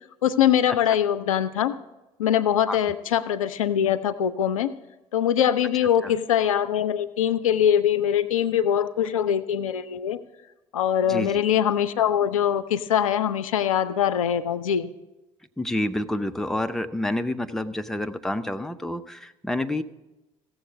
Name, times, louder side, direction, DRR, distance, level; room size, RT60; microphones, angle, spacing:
voice 1, 0.2-1.7 2.2-4.7 5.1-10.2 10.7-14.9, left 9 dB, 75° left, 13 dB, 0.5 m, -23 dB
voice 2, 11.1-11.4 15.6-19.8, left 1 dB, ahead, 8 dB, 0.6 m, -28 dB
16.0 x 7.2 x 5.3 m, 1.0 s
figure-of-eight pair, 55°, 17 cm